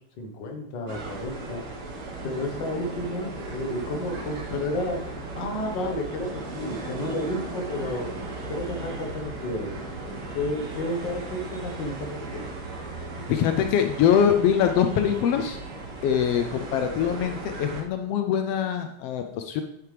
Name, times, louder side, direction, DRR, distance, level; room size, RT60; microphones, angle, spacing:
voice 1, 0.0-1.6 2.2-8.1 8.5-9.8 10.3-12.5, left 1 dB, 50° left, 3 dB, 1.5 m, -31 dB
sound 1, 0.9-17.8, right 2 dB, 55° right, 2.0 m, -36 dB
voice 2, 13.3-15.6 16.0-19.6, left 8 dB, 85° left, 6 dB, 1.4 m, -23 dB
9.2 x 8.9 x 3.4 m, 0.80 s
omnidirectional pair, 3.4 m